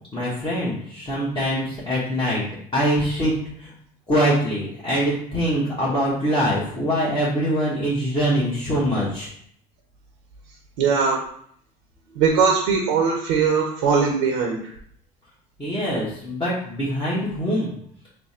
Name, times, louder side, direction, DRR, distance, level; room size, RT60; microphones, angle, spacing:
voice 1, 0.1-2.4 2.7-3.3 3.6-3.7 4.1-9.3 12.1-12.2 15.6-17.7, equal, 25° left, -8 dB, 1.2 m, -23 dB
voice 2, 10.8-11.2 12.2-14.6, right 5 dB, 85° right, 1 dB, 0.7 m, -20 dB
3.3 x 2.2 x 4.2 m, 0.65 s
supercardioid pair, 80°, 20 cm